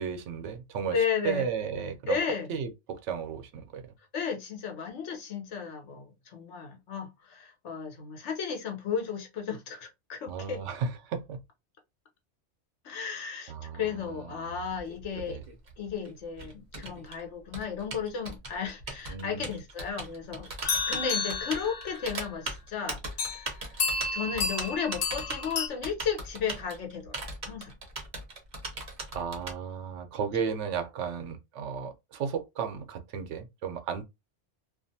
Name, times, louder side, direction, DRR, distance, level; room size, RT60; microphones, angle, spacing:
voice 1, 0.0-2.2 2.5-3.9 10.3-11.4 13.5-14.6 15.1-15.4 19.1-19.5 29.1-34.0, right 6 dB, 85° right, 0.9 m, -34 dB
voice 2, 0.9-1.4 2.1-2.5 4.1-10.6 12.8-15.4 15.8-20.5 20.9-23.7 24.1-27.2 27.4-27.7, left 6 dB, 75° left, 1.1 m, -34 dB
Typing, 14.7-29.5, right 2 dB, 45° right, 0.8 m, -39 dB
sound 1, 20.6-22.3 23.2-23.4 23.8-25.7, left 4 dB, 60° left, 0.7 m, -31 dB
2.5 x 2.4 x 2.6 m
omnidirectional pair, 1.2 m